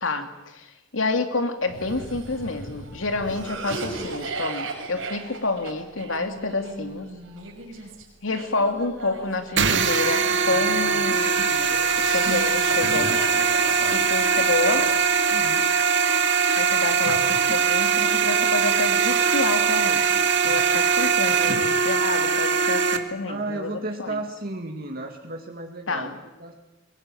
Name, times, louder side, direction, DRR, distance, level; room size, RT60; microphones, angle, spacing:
voice 1, 0.0-7.1 8.2-13.1 13.9-14.9 16.6-23.7 24.0-24.2 25.9-26.2, left 3 dB, 85° left, 7 dB, 2.6 m, -28 dB
Cough, 1.7-10.9 11.5-15.4, right 3 dB, 80° right, 5.9 m, -36 dB
sound 1, 9.6-23.0, right 6 dB, 65° right, 2.1 m, -21 dB
voice 2, 15.3-15.6 23.3-26.5, right 2 dB, 50° right, 3 dB, 2.3 m, -34 dB
23.5 x 21.5 x 9.2 m, 0.99 s
head